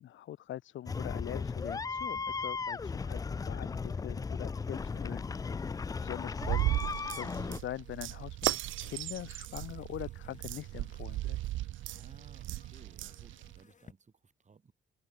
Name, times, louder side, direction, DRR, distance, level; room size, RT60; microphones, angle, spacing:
voice 1, 0.0-11.4, left 12 dB, 75° left, 2.2 m, -43 dB
sound 1, 0.9-7.6, left 5 dB, 20° left, 0.3 m, -36 dB
sound 2, 4.7-13.9, left 5 dB, 40° left, 5.4 m, -64 dB
voice 2, 5.8-6.1 11.9-14.7, right 5 dB, 35° right, 5.9 m, -58 dB
sound 3, 6.4-13.6, right 16 dB, 80° right, 0.5 m, -36 dB
cardioid pair, 90°, 20 cm